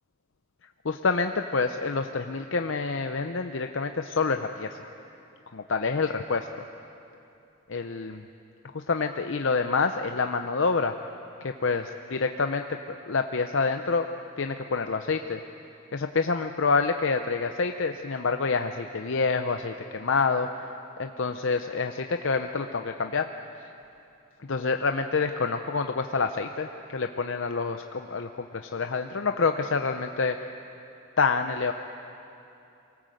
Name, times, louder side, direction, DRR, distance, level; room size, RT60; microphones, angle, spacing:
voice 1, 0.8-4.9 5.5-6.5 7.7-8.2 8.7-10.9 11.4-14.1 14.4-15.4 15.9-20.7 21.0-23.3 24.5-30.5 31.2-31.7, left 4 dB, 65° left, 6 dB, 0.7 m, -27 dB
23.5 x 18.5 x 7.8 m, 2.8 s
head